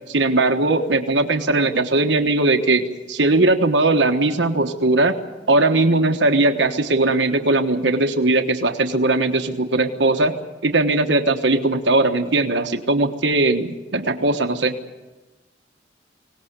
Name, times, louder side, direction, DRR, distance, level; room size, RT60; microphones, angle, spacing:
voice 1, 0.1-5.2 5.5-10.3 10.6-14.7, right 2 dB, 75° right, 5 dB, 1.3 m, -19 dB
23.5 x 18.5 x 8.1 m, 1.2 s
head